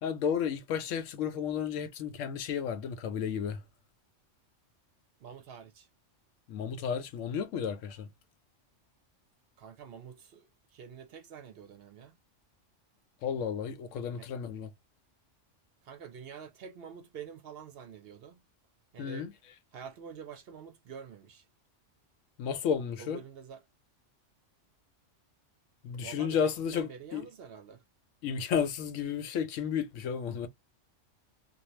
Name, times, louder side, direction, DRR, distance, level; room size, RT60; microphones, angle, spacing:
voice 1, 0.0-3.6 6.5-8.1 13.2-14.7 19.0-19.3 22.4-23.2 25.8-27.3 28.2-30.5, left 7 dB, 90° left, 1.0 m, -32 dB
voice 2, 5.2-5.9 9.6-10.5 10.7-12.1 14.2-14.3 15.8-18.4 18.9-19.3 19.7-21.5 23.0-23.6 26.0-27.8, right 7 dB, 60° right, 0.7 m, -47 dB
2.6 x 2.2 x 3.0 m
omnidirectional pair, 1.3 m